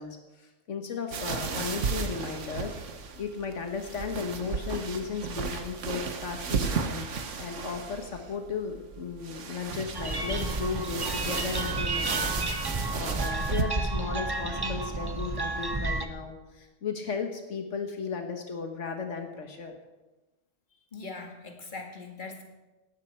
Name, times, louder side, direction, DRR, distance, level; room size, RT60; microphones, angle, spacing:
voice 1, 0.0-2.8 3.2-7.1 7.4-19.8, left 5 dB, 85° left, 4 dB, 1.7 m, -35 dB
sound 1, 1.1-13.6, right 5 dB, 85° right, 1.5 m, -34 dB
sound 2, 9.9-16.1, right 2 dB, 20° right, 0.9 m, -31 dB
voice 2, 20.9-22.4, left 3 dB, 40° left, 2 dB, 2.2 m, -41 dB
17.5 x 13.0 x 4.6 m, 1.1 s
omnidirectional pair, 1.2 m